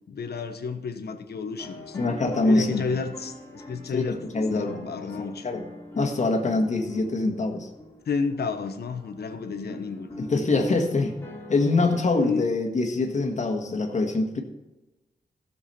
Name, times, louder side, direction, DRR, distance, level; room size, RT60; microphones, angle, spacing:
voice 1, 0.1-2.0 2.4-5.5 8.1-10.1 12.2-12.5, left 5 dB, 80° left, 7 dB, 1.1 m, -31 dB
sound 1, 1.6-12.3, left 1 dB, 15° left, 2.5 m, -43 dB
voice 2, 1.9-3.0 3.9-4.8 5.0-5.1 5.4-5.6 5.9-7.7 10.2-11.1 11.5-14.4, left 3 dB, 45° left, 3 dB, 1.7 m, -24 dB
16.5 x 7.2 x 4.4 m, 1.1 s
wide cardioid pair, 165°, 16 cm